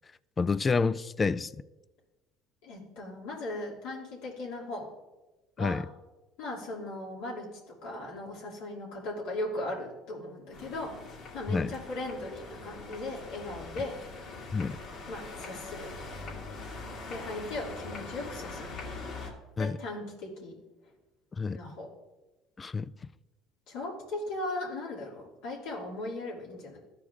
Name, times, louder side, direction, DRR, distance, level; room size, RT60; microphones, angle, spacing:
voice 1, 0.4-1.5 5.6-5.8 11.5-11.7 14.5-14.8 19.6-19.8 21.4-21.6 22.6-22.9, left 4 dB, 25° left, 0.3 m, -28 dB
voice 2, 2.6-4.9 5.6-5.8 6.4-7.5 7.8-10.9 11.3-14.0 15.1-15.9 17.1-18.7 19.6-20.5 21.5-21.9 23.7-26.8, left 2 dB, 80° left, 2.8 m, -38 dB
sound 1, 10.5-19.3, left 3 dB, 55° left, 2.4 m, -42 dB
13.5 x 4.8 x 3.6 m
supercardioid pair, 100°, 0 cm